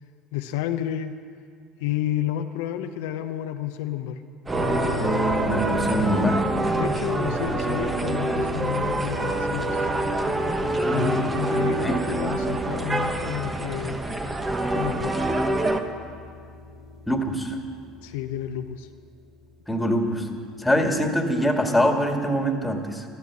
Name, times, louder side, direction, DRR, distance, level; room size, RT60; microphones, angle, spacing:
voice 1, 0.3-1.2 1.8-4.2 6.7-9.9 10.9-14.0 14.7-15.1 18.0-18.9, left 11 dB, 80° left, 7 dB, 0.7 m, -30 dB
sound 1, 4.5-15.8, right 2 dB, 20° right, 1.2 m, -26 dB
sound 2, 4.5-19.4, equal, 35° right, 3.9 m, -36 dB
voice 2, 5.5-6.4 11.8-12.0 17.1-17.6 19.7-20.3 20.6-23.0, equal, 10° left, 3 dB, 2.2 m, -23 dB
13.0 x 12.5 x 7.6 m, 2.1 s
supercardioid pair, 85°, 0 cm